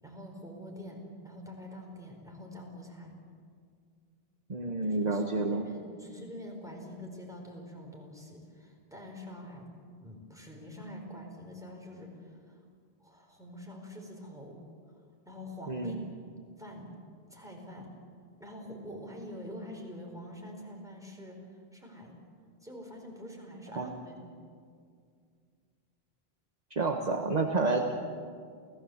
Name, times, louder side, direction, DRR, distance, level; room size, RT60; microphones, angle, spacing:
voice 1, 0.0-3.1 4.8-12.6 13.0-14.6 15.3-15.9 16.2-16.3 16.6-16.9 17.3-17.9 18.4-22.1 22.6-24.2, left 1 dB, 5° right, 0 dB, 4.7 m, -46 dB
voice 2, 4.5-5.6 15.7-16.0 23.8-23.9 26.7-27.9, right 3 dB, 40° right, 3 dB, 1.4 m, -29 dB
29.0 x 17.0 x 8.0 m, 2.2 s
omnidirectional pair, 1.0 m